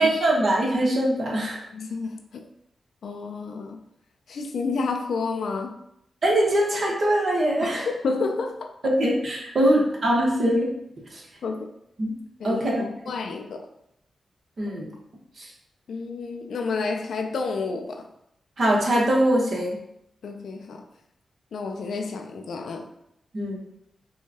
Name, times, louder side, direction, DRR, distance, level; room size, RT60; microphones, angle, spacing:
voice 1, 0.0-1.6 6.2-7.9 8.8-10.7 11.1-11.2 12.0-12.1 12.4-12.9 14.6-14.9 15.4-15.5 18.6-19.7 23.3-23.6, right 1 dB, 60° right, -3 dB, 1.2 m, -22 dB
voice 2, 1.7-2.5 3.0-3.8 4.3-5.8 7.6-8.9 11.4-11.7 12.4-13.7 15.9-18.1 20.2-20.9 21.5-22.9, left 4 dB, 80° left, 5 dB, 0.4 m, -30 dB
4.6 x 2.3 x 2.8 m, 0.77 s
cardioid pair, 60°, 0 cm